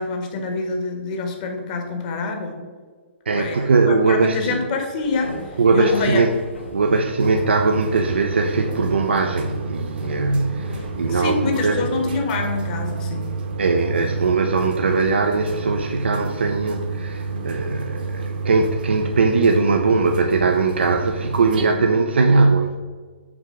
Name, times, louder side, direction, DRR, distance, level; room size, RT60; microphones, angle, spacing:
voice 1, 0.0-2.6 3.3-5.3 5.7-6.2 6.9-7.0 10.5-10.7 11.1-13.3 21.6-21.8, left 4 dB, 40° left, 3 dB, 1.4 m, -26 dB
voice 2, 3.3-4.6 5.6-6.3 6.7-11.9 13.6-22.8, right 4 dB, 65° right, 4 dB, 0.5 m, -20 dB
sound 1, 5.0-11.3, left 2 dB, 70° left, 1.7 m, -38 dB
sound 2, 7.2-21.6, right 3 dB, 50° right, 1.0 m, -30 dB
6.0 x 4.5 x 6.2 m, 1.5 s
figure-of-eight pair, 120°, 6 cm